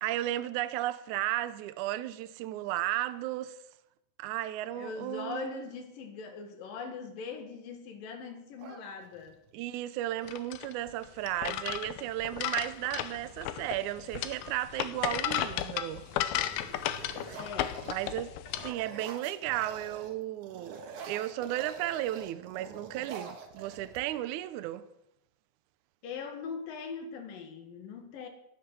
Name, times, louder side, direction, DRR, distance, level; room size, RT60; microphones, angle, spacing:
voice 1, 0.0-3.6 4.2-5.7 9.5-16.0 17.9-18.3 18.6-24.9, right 14 dB, 90° right, 1.7 m, -34 dB
voice 2, 4.8-9.4 17.4-17.8 26.0-28.3, left 5 dB, 65° left, 3.5 m, -41 dB
sound 1, 8.6-9.5 11.2-11.3 11.7-12.2 12.7-14.2 14.9-15.3 15.6-20.2 20.4-24.4, right 5 dB, 60° right, 2.7 m, -47 dB
sound 2, 10.2-18.7, left 12 dB, 80° left, 2.6 m, -34 dB
21.0 x 7.5 x 6.2 m
omnidirectional pair, 4.4 m